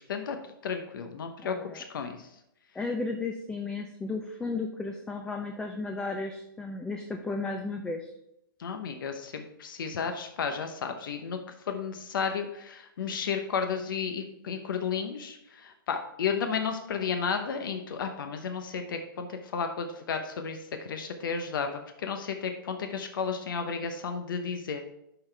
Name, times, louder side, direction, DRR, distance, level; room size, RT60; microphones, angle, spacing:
voice 1, 0.6-2.3 8.6-11.4 11.7-21.7 22.0-24.8, left 6 dB, 65° left, 6 dB, 0.9 m, -33 dB
voice 2, 1.4-1.8 2.8-8.1, left 3 dB, 5° left, 3 dB, 0.4 m, -34 dB
11.0 x 4.0 x 3.3 m, 0.81 s
hypercardioid pair, 145°, 12 cm